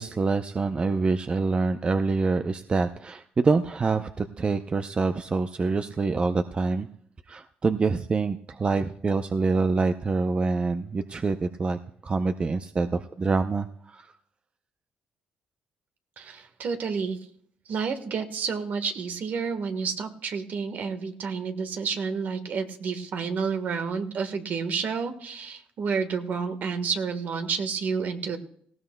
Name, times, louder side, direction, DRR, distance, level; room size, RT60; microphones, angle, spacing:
voice 1, 0.0-6.9 7.3-14.1, right 4 dB, 35° right, 9 dB, 0.5 m, -26 dB
voice 2, 16.2-17.2 17.7-28.4, right 5 dB, 60° right, 7 dB, 1.3 m, -30 dB
18.5 x 16.0 x 2.2 m, 0.64 s
supercardioid pair, 75°, 3 cm